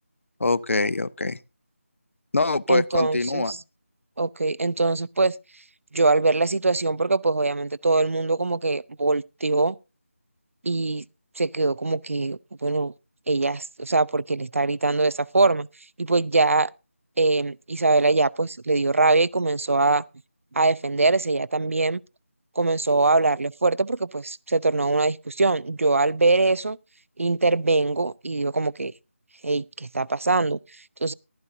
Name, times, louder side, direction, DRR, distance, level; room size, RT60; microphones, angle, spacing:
voice 1, 0.4-1.4 2.3-3.5, left 2 dB, 65° left, 0.7 m, -23 dB
voice 2, 2.7-3.6 4.2-5.3 5.9-9.8 10.6-11.0 11.4-12.9 13.3-15.7 16.0-16.7 17.2-20.0 20.5-22.0 22.6-26.8 27.2-28.9 29.4-30.6 31.0-31.1, right 3 dB, 70° right, 0.5 m, -22 dB
15.0 x 12.5 x 2.7 m
figure-of-eight pair, 175°, 7 cm